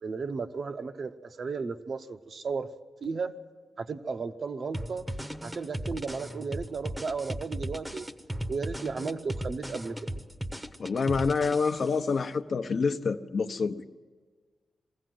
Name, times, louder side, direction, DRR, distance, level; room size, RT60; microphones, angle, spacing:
voice 1, 0.0-2.7 3.0-3.3 3.8-5.1 5.4-8.1 8.5-10.0, right 4 dB, 55° right, 7 dB, 0.8 m, -34 dB
sound 1, 4.7-12.1, equal, 10° right, 0.8 m, -37 dB
voice 2, 10.8-13.8, left 5 dB, 55° left, 8 dB, 0.7 m, -27 dB
21.5 x 16.0 x 7.7 m, 1.5 s
wide cardioid pair, 120°, 0 cm